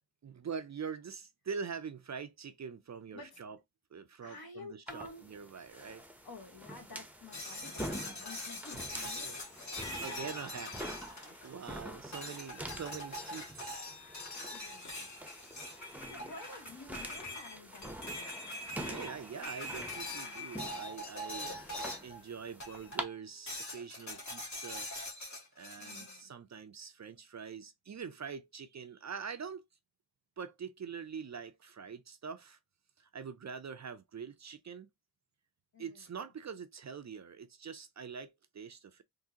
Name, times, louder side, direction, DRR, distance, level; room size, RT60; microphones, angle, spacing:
voice 1, 0.2-3.6 3.9-6.1 9.2-9.4 10.0-13.9 14.2-14.5 18.8-21.5 22.0-24.9 25.6-29.6 30.4-32.6 33.0-34.9 35.8-39.0, right 6 dB, 45° right, 0.4 m, -44 dB
voice 2, 4.2-5.3 6.2-9.4 11.2-11.4 14.5-15.2 16.1-18.5 25.8-26.3 35.7-36.1, left 3 dB, 60° left, 1.3 m, -51 dB
sound 1, 4.9-23.0, right 1 dB, 5° right, 0.6 m, -46 dB
sound 2, 7.3-11.7 12.1-22.2 22.6-23.1 23.5-26.2, left 1 dB, 45° left, 1.6 m, -43 dB
3.6 x 2.6 x 2.7 m
wide cardioid pair, 70°, 41 cm